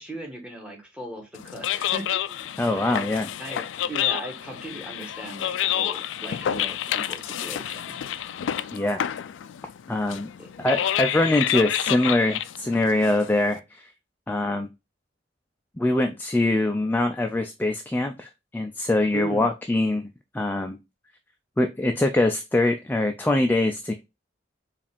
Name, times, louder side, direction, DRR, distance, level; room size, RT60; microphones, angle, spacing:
voice 1, 0.0-3.1 3.4-8.0 10.4-10.5 19.1-19.5, right 1 dB, 5° right, 2 dB, 1.3 m, -38 dB
sound 1, 1.4-13.6, left 11 dB, 85° left, 0.3 m, -29 dB
voice 2, 2.6-3.3 8.7-9.1 9.9-10.3 10.6-13.9 14.3-14.7 15.8-20.1 20.3-20.8 21.6-23.9, left 2 dB, 10° left, 5 dB, 0.3 m, -23 dB
4.9 x 2.5 x 3.4 m, 0.24 s
head